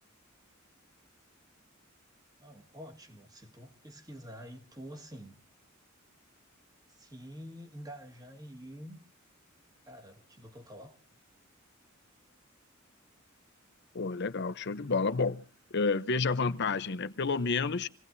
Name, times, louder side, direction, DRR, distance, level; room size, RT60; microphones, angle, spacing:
voice 1, 2.4-5.4 6.9-9.0 9.8-10.9, equal, 20° right, 1.8 m, -47 dB
voice 2, 13.9-15.4 15.7-17.9, left 4 dB, 55° left, 0.8 m, -30 dB
27.5 x 17.5 x 2.7 m
head